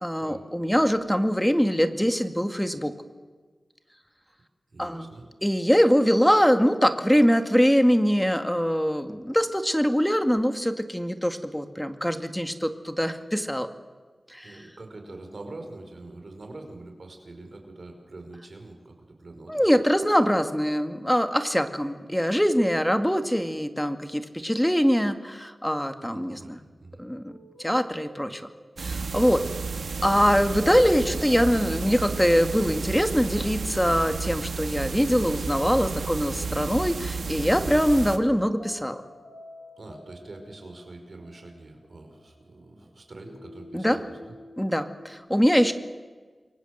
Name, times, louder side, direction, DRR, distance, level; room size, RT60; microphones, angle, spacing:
voice 1, 0.0-2.9 4.8-5.1 5.4-13.7 14.3-14.6 19.5-26.6 27.0-27.3 27.6-28.4 28.8-29.4 30.0-39.0 43.7-44.0 44.6-45.7, equal, 5° left, 8 dB, 2.0 m, -23 dB
voice 2, 4.7-5.3 14.4-19.7 26.0-27.0 37.6-37.8 39.8-44.4, right 2 dB, 55° right, 4 dB, 5.4 m, -44 dB
sound 1, 27.3-42.9 43.2-45.1, left 1 dB, 50° left, 5.9 m, -50 dB
sound 2, 28.8-38.2, right 4 dB, 85° right, 2.2 m, -32 dB
29.0 x 23.5 x 8.1 m, 1.4 s
wide cardioid pair, 85°, 0 cm